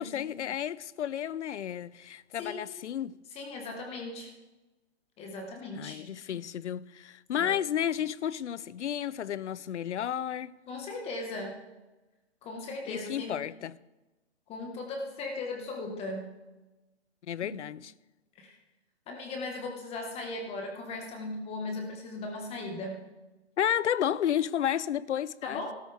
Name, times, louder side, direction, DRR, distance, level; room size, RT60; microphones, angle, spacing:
voice 1, 0.0-3.2 5.7-10.6 12.9-13.8 17.2-17.9 23.6-25.7, left 10 dB, 85° left, 0.6 m, -32 dB
voice 2, 3.3-4.3 5.2-6.0 7.4-7.5 10.7-11.6 12.4-13.3 14.5-16.3 17.4-17.5 18.4-18.6 19.1-23.0 25.4-25.7, left 2 dB, 20° left, 1.4 m, -38 dB
13.5 x 13.0 x 3.4 m
hypercardioid pair, 145°, 34 cm